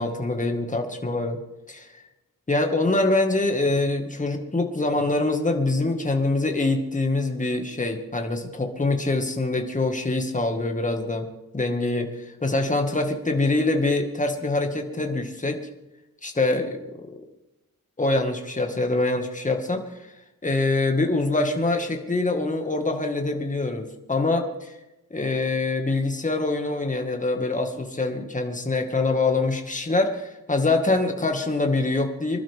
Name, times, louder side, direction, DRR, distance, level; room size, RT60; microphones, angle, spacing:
voice 1, 0.0-1.4 1.7-1.9 2.5-11.3 11.5-15.6 16.2-16.8 18.0-19.8 20.4-24.7 25.1-32.4, left 2 dB, 20° left, 3 dB, 2.0 m, -24 dB
26.0 x 12.0 x 3.7 m, 0.97 s
wide cardioid pair, 130°, 34 cm